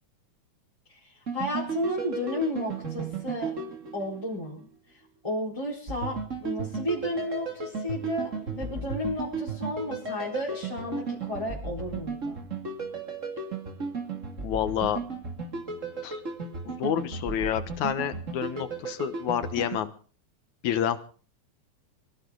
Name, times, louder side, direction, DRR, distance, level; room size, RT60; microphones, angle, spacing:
voice 1, 0.9-3.5 3.9-4.7 5.2-12.4, left 1 dB, 10° left, -5 dB, 4.2 m, -33 dB
sound 1, 1.3-4.6 5.9-19.8, right 4 dB, 25° right, 2.4 m, -35 dB
voice 2, 14.4-15.0 16.0-16.2 16.7-19.9 20.6-21.0, left 9 dB, 75° left, 11 dB, 2.5 m, -28 dB
23.5 x 14.5 x 3.9 m, 0.40 s
omnidirectional pair, 3.5 m